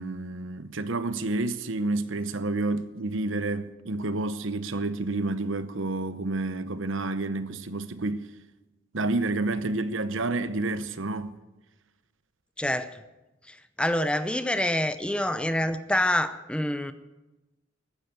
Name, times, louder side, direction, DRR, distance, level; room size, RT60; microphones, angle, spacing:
voice 1, 0.0-8.3 8.9-11.4, right 2 dB, 70° right, 0.9 m, -29 dB
voice 2, 12.6-13.0 13.5-16.9, left 1 dB, 5° left, 0.6 m, -27 dB
14.5 x 9.9 x 9.4 m
head